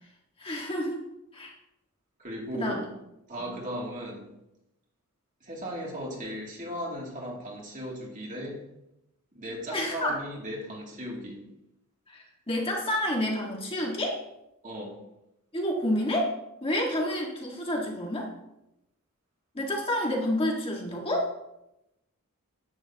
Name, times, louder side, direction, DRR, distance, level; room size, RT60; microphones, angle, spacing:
voice 1, 0.4-1.0 1.3-1.5 2.5-2.8 3.4-3.5 9.7-10.2 12.1-14.2 15.5-16.3 16.6-18.3 19.5-21.3, left 1 dB, 25° left, -1 dB, 1.7 m, -29 dB
voice 2, 2.2-2.9 3.3-4.3 5.4-8.6 9.3-11.4 14.6-15.0, equal, 35° right, -3 dB, 2.6 m, -36 dB
10.5 x 10.0 x 2.9 m, 0.88 s
head